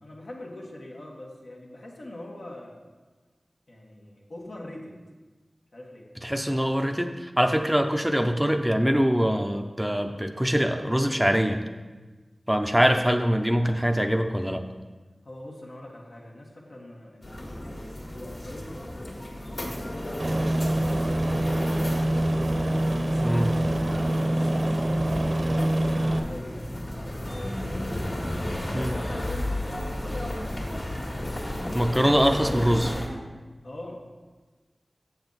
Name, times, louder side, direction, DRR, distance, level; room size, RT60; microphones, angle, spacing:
voice 1, 0.0-2.8 3.7-5.0 5.7-6.1 15.2-17.8 18.1-22.3 23.1-26.6 26.9-27.9 28.3-30.7 33.6-34.0, left 1 dB, 75° left, -2 dB, 1.4 m, -44 dB
voice 2, 6.2-11.6 12.5-14.6 23.2-23.5 28.7-29.0 31.7-33.0, equal, 10° right, 5 dB, 0.5 m, -23 dB
sound 1, 17.2-33.1, left 1 dB, 60° left, 1.8 m, -34 dB
Aircraft, 20.2-26.2, right 1 dB, 70° right, 0.8 m, -25 dB
7.3 x 7.0 x 4.0 m, 1.3 s
wide cardioid pair, 45°, 0 cm